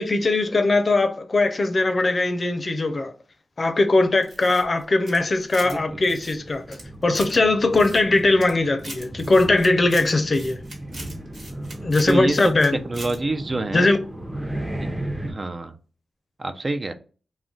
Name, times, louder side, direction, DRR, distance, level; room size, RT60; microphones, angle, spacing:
voice 1, 0.0-3.1 3.6-10.6 11.8-12.8 13.7-14.0, left 2 dB, 50° left, 0.5 m, -20 dB
sound 1, 4.2-5.8 6.0-7.4 7.7-8.5 8.8-12.7 12.9-13.2, right 1 dB, 60° right, 1.4 m, -40 dB
sound 2, 5.4-15.3, right 1 dB, 10° right, 0.7 m, -36 dB
voice 2, 5.6-6.0 12.1-12.4 12.9-13.9 14.8-14.9 15.3-15.7 16.4-16.9, right 2 dB, 45° right, 0.4 m, -26 dB
2.3 x 2.1 x 3.7 m
cardioid pair, 45°, 0 cm